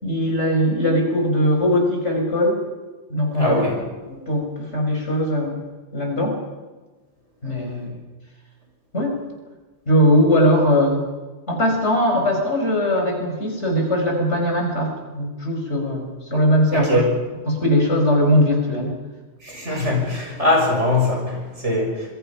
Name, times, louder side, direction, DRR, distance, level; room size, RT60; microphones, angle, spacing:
voice 1, 0.0-2.6 3.1-3.6 4.1-5.6 5.9-6.4 7.4-8.0 8.9-9.1 9.9-11.0 11.5-17.0 17.5-18.9, equal, 65° left, 2 dB, 5.6 m, -20 dB
voice 2, 3.4-3.7 16.7-17.1 19.5-21.4 21.6-21.9, left 1 dB, 70° right, 0 dB, 7.1 m, -21 dB
26.0 x 22.5 x 5.8 m, 1.2 s
omnidirectional pair, 1.3 m